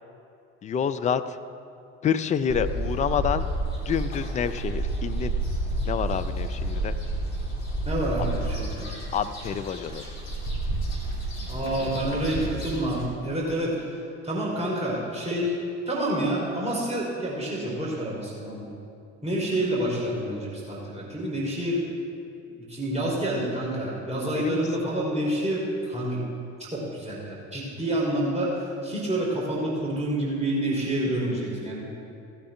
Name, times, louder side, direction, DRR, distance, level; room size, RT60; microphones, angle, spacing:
voice 1, 0.6-1.4 2.0-3.5 3.9-5.3 5.9-6.9 9.1-10.0 24.3-24.6, left 8 dB, 20° left, 10 dB, 0.4 m, -27 dB
sound 1, 2.5-13.0, right 2 dB, 65° left, 2.6 m, -30 dB
voice 2, 7.9-8.9 11.5-14.0 14.2-15.5 15.9-18.7 19.2-21.8 22.7-26.2 26.7-31.9, right 1 dB, 15° right, -4 dB, 3.0 m, -28 dB
16.0 x 8.9 x 3.3 m, 2.5 s
figure-of-eight pair, 60°, 36 cm